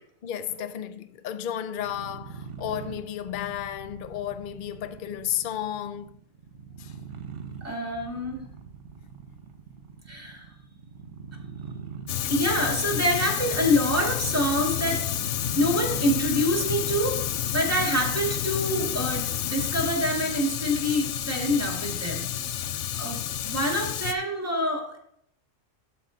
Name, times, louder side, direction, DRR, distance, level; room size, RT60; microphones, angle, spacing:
voice 1, 0.2-6.1 6.8-7.0 17.7-17.9, left 10 dB, 55° left, 0.6 m, -33 dB
sound 1, 1.7-19.0, right 6 dB, 65° right, 1.1 m, -44 dB
voice 2, 7.6-8.4 10.1-10.5 12.3-15.0 15.6-17.2 17.5-22.7 22.9-25.0, equal, 10° right, 1.9 m, -26 dB
Fire, 12.1-24.1, left 10 dB, 75° left, 0.9 m, -30 dB
12.5 x 4.7 x 3.8 m
omnidirectional pair, 1.3 m